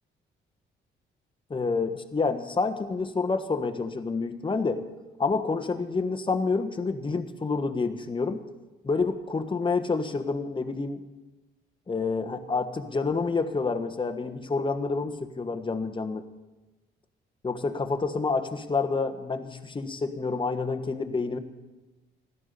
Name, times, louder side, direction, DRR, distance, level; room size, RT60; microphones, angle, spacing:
voice 1, 1.5-4.8 5.2-8.4 8.9-11.0 11.9-16.2 17.4-21.4, left 4 dB, 25° left, 7 dB, 1.3 m, -28 dB
15.5 x 12.0 x 6.8 m, 1.1 s
cardioid pair, 90°, 20 cm